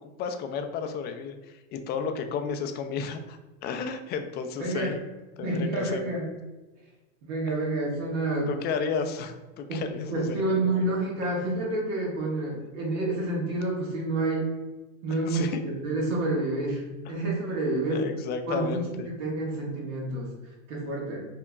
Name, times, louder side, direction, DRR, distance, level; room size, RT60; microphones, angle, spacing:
voice 1, 0.0-3.4 3.6-5.0 5.4-6.1 8.5-10.6 12.5-12.7 15.3-15.6 17.9-19.1, left 5 dB, 30° left, 6 dB, 0.3 m, -32 dB
voice 2, 4.6-5.0 5.4-6.3 7.2-8.5 9.7-9.8 10.1-14.5 15.0-16.8 17.1-18.1 18.5-20.3 20.7-21.2, right 2 dB, 75° right, -3 dB, 1.4 m, -28 dB
4.4 x 2.8 x 2.3 m, 1.1 s
supercardioid pair, 120°, 36 cm